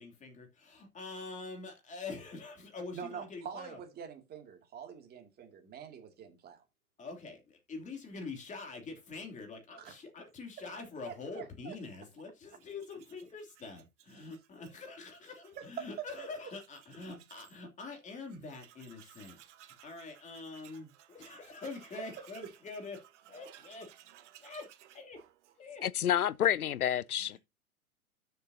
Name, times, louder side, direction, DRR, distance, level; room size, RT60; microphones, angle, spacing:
voice 1, 0.0-3.8 7.0-19.4 19.8-23.9 24.4-25.2 25.6-25.9 27.2-27.4, left 3 dB, 15° left, 3.0 m, -45 dB
voice 2, 2.9-6.6 9.8-10.0 11.1-11.8 14.1-14.3 15.6-15.9 16.2-16.3 21.3-21.4, right 7 dB, 20° right, 2.5 m, -45 dB
Tools, 12.5-17.6 18.0-18.1 18.3-25.9, right 11 dB, 55° right, 1.4 m, -59 dB
voice 3, 25.8-27.4, left 10 dB, 80° left, 0.6 m, -29 dB
12.5 x 6.8 x 2.8 m
figure-of-eight pair, 110°, 44 cm